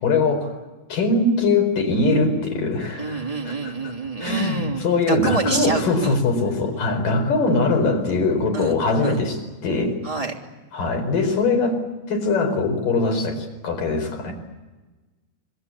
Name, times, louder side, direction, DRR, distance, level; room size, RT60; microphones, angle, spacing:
voice 1, 0.0-0.5 0.9-3.7 4.2-10.0 10.7-11.8 12.1-14.3, left 3 dB, 70° left, 4 dB, 6.2 m, -22 dB
voice 2, 3.0-6.1 8.5-9.2 10.0-10.3, right 3 dB, 10° right, 2 dB, 2.6 m, -28 dB
27.5 x 22.0 x 8.5 m, 1.2 s
omnidirectional pair, 4.0 m